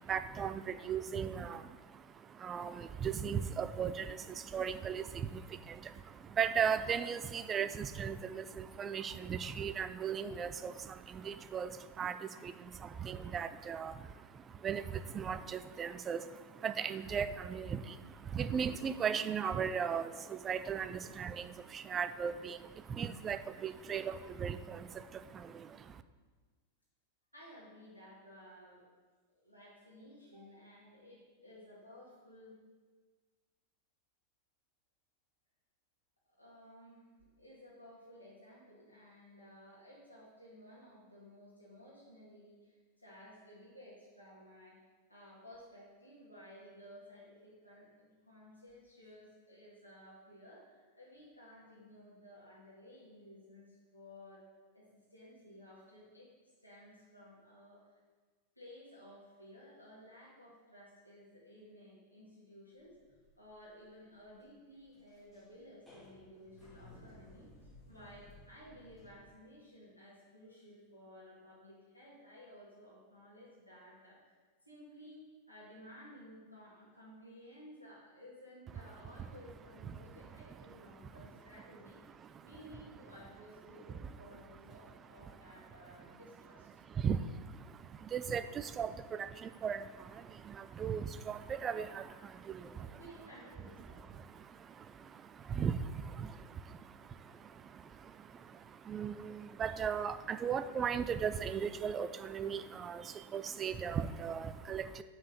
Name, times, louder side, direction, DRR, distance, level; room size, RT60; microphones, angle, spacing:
voice 1, 0.0-26.0 79.2-79.3 79.8-80.3 81.0-81.1 82.2-82.5 83.9-84.1 84.8-86.2 86.7-93.0 93.8-105.0, right 7 dB, 25° right, 12 dB, 0.4 m, -38 dB
voice 2, 27.3-28.9 29.4-32.6 36.4-37.0 37.4-44.8 45.1-54.4 54.7-56.3 56.6-58.0 58.6-63.0 63.4-74.4 74.6-75.2 75.5-82.0 82.4-86.7 92.7-94.0, equal, 90° left, -8 dB, 1.9 m, -56 dB
sound 1, 62.8-69.3, left 1 dB, 5° left, 2.6 m, -59 dB
6.2 x 4.7 x 6.4 m, 1.4 s
figure-of-eight pair, 90°, 0 cm